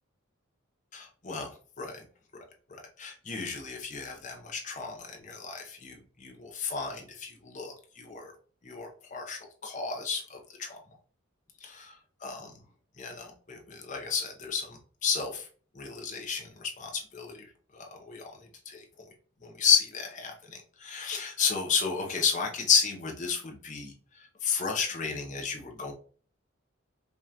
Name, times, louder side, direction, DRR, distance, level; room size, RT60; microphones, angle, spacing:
voice 1, 0.9-1.5 1.8-2.1 2.7-8.3 8.6-10.8 11.6-11.9 12.2-12.5 13.0-15.5 15.7-17.5 17.7-18.3 18.7-18.8 19.4-23.9 24.4-25.9, left 6 dB, 35° left, 2 dB, 0.8 m, -32 dB
5.3 x 2.4 x 2.9 m, 0.42 s
head